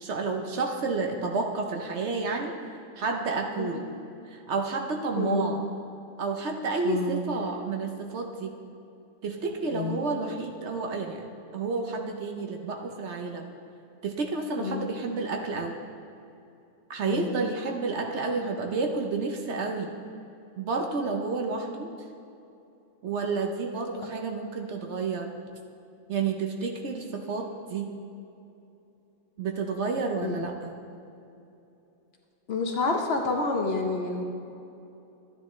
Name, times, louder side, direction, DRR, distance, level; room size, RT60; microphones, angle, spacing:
voice 1, 0.0-2.5 2.9-3.9 4.3-5.6 6.2-8.5 9.2-11.3 11.5-13.5 14.0-15.8 16.9-19.9 20.6-21.9 23.0-25.3 26.1-27.9 29.4-30.7, right 4 dB, 60° right, 3 dB, 1.0 m, -30 dB
voice 2, 5.1-5.5 6.8-7.2 9.7-10.0 14.6-14.9 17.0-17.4 30.2-30.4 32.5-34.2, left 3 dB, 55° left, 2 dB, 0.9 m, -28 dB
12.5 x 9.7 x 3.1 m, 2.8 s
omnidirectional pair, 1.4 m